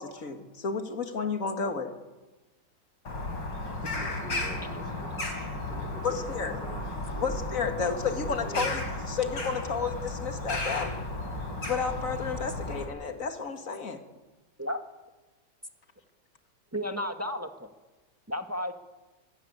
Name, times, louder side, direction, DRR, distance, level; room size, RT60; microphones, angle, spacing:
voice 1, 0.0-1.9 6.0-6.5 7.2-10.9 11.6-14.0, left 5 dB, 50° left, 6 dB, 2.5 m, -32 dB
Bird vocalization bird call bird song, 3.1-12.9, left 2 dB, 90° left, 5.0 m, -34 dB
voice 2, 3.9-5.2 5.5-7.4 7.7-9.0 9.3-9.4, right 2 dB, 30° right, 3 dB, 3.0 m, -45 dB
voice 3, 16.7-17.7 18.3-18.7, equal, 10° right, 6 dB, 1.5 m, -33 dB
25.0 x 16.5 x 9.8 m, 1.2 s
omnidirectional pair, 1.9 m